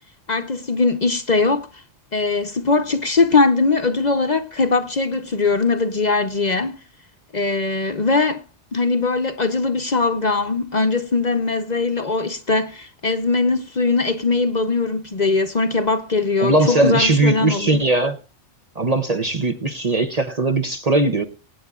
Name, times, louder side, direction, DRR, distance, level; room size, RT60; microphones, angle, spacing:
voice 1, 0.3-1.7 2.1-6.8 7.3-8.4 8.7-17.8, left 3 dB, 40° left, 0.9 m, -20 dB
voice 2, 16.4-18.2 18.8-21.2, right 2 dB, 35° right, 0.8 m, -19 dB
24.0 x 9.4 x 2.4 m
omnidirectional pair, 1.2 m